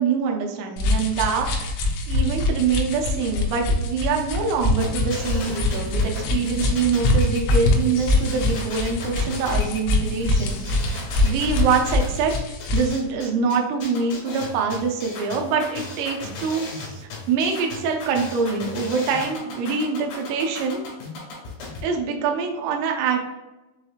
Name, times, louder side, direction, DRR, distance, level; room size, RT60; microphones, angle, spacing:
voice 1, 0.0-1.7 2.1-20.8 21.8-23.3, right 5 dB, 80° right, 2 dB, 2.7 m, -25 dB
sound 1, 0.8-13.0, left 2 dB, 85° left, 3.1 m, -24 dB
sound 2, 4.8-21.8, left 3 dB, 70° left, 3.3 m, -36 dB
7.0 x 2.9 x 2.4 m, 1.1 s
omnidirectional pair, 5.4 m